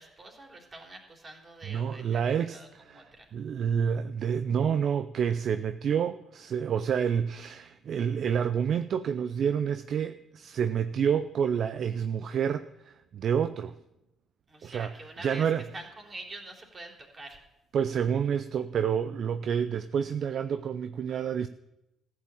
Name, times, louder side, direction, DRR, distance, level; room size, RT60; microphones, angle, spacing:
voice 1, 0.0-3.3 14.5-15.5 15.7-17.4, right 2 dB, 35° right, 1 dB, 3.4 m, -46 dB
voice 2, 1.7-13.7 14.6-14.9 15.2-15.7 17.7-21.5, right 7 dB, 55° right, 11 dB, 0.5 m, -29 dB
14.5 x 7.8 x 7.2 m, 0.90 s
hypercardioid pair, 50°, 0 cm